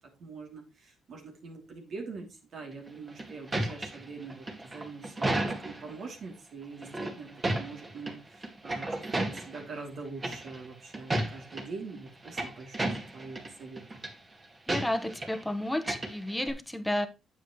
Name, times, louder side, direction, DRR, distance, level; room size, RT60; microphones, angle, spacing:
voice 1, 0.2-14.0, right 4 dB, 60° right, 3.0 m, -44 dB
sound 1, 2.9-5.9 6.8-8.1 8.4-9.7 10.2-10.7 10.9-11.6 12.1-13.5 13.8-14.1 14.7-15.4 15.7-16.5, right 1 dB, 25° right, 2.2 m, -33 dB
voice 2, 14.7-17.1, left 1 dB, 5° left, 1.2 m, -31 dB
8.9 x 7.8 x 3.2 m
cardioid pair, 90°, 0 cm